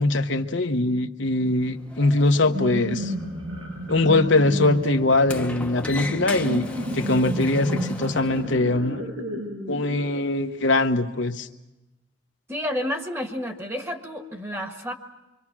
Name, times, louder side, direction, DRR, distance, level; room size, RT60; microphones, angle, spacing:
voice 1, 0.0-3.1 3.9-9.0 9.7-11.5, left 2 dB, 65° left, 6 dB, 1.0 m, -22 dB
Sliding door, 1.5-8.6, left 1 dB, 5° left, 1.0 m, -37 dB
sound 1, 2.3-10.2, equal, 85° right, 7.4 m, -32 dB
voice 2, 12.5-14.9, equal, 10° right, 5 dB, 1.6 m, -30 dB
25.5 x 25.0 x 6.0 m, 1.0 s
head